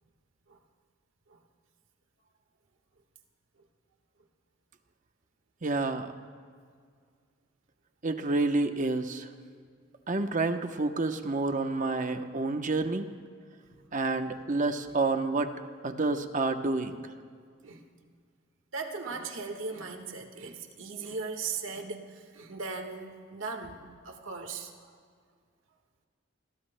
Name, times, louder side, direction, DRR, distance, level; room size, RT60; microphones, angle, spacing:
voice 1, 5.6-6.1 8.0-9.3 10.1-13.1 13.9-15.5 15.8-17.1, right 3 dB, 40° right, 7 dB, 0.9 m, -29 dB
voice 2, 18.7-24.9, right 4 dB, 75° right, 4 dB, 1.5 m, -38 dB
29.5 x 21.5 x 2.2 m, 2.1 s
head